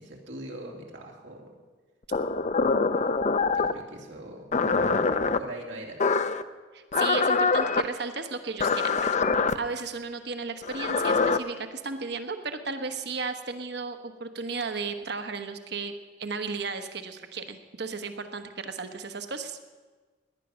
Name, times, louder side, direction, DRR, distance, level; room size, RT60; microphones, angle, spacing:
voice 1, 0.0-1.5 2.9-3.2 3.5-4.5 5.4-6.0, right 1 dB, 90° right, 0 dB, 2.8 m, -42 dB
sound 1, 2.1-3.8 4.5-5.4 6.0-6.4 6.9-7.8 8.6-9.5 10.6-11.4, left 4 dB, 40° left, 0.6 m, -24 dB
voice 2, 6.7-9.1 9.5-15.9 16.2-19.6, right 4 dB, 65° right, 8 dB, 1.2 m, -34 dB
17.5 x 10.5 x 6.3 m, 1.3 s
head